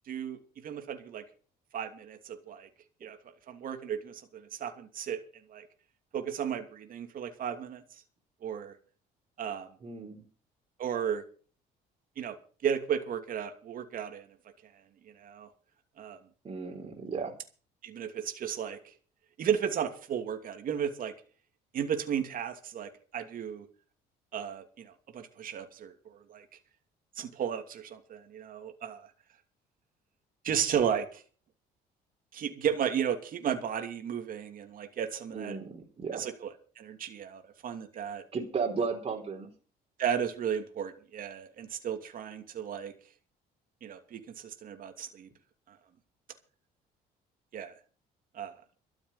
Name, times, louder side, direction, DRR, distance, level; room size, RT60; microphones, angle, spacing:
voice 1, 0.1-0.4 0.6-1.2 1.7-2.7 3.0-3.2 3.5-5.2 5.5-5.6 6.1-7.8 8.4-8.7 9.4-9.7 10.8-11.2 12.2-12.3 12.6-14.3 15.2-15.5 16.0-16.2 17.8-18.8 19.4-21.1 21.7-23.6 24.3-26.4 27.2-29.0 30.4-31.2 32.3-35.6 36.1-36.3 36.8-38.2 40.0-42.9 43.8-45.3 47.5-47.7 48.3-48.5, right 8 dB, 55° right, 5 dB, 2.8 m, -34 dB
voice 2, 9.8-10.2 16.4-17.3 35.3-36.2 38.3-39.5, right 5 dB, 35° right, 0 dB, 3.8 m, -34 dB
13.0 x 7.2 x 9.7 m, 0.40 s
cardioid pair, 110°, 17 cm